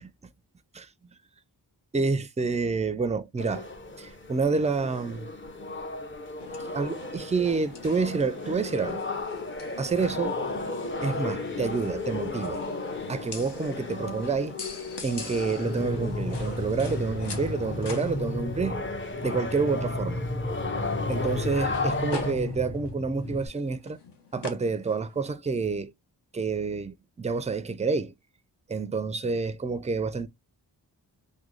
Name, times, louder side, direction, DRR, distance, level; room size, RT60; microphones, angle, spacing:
voice 1, 1.9-3.7 4.0-5.3 6.7-9.1 9.8-10.4 11.0-12.6 13.1-14.6 15.0-18.8 19.2-20.2 21.1-24.0 24.3-25.9 26.3-28.1 28.7-30.3, right 4 dB, 20° right, 0.3 m, -28 dB
sound 1, 3.4-22.3, left 3 dB, 30° left, 0.6 m, -35 dB
sound 2, 6.4-25.3, left 3 dB, 70° left, 0.9 m, -43 dB
sound 3, 15.5-23.5, left 1 dB, 50° left, 1.4 m, -33 dB
3.6 x 2.2 x 3.0 m
wide cardioid pair, 85°, 42 cm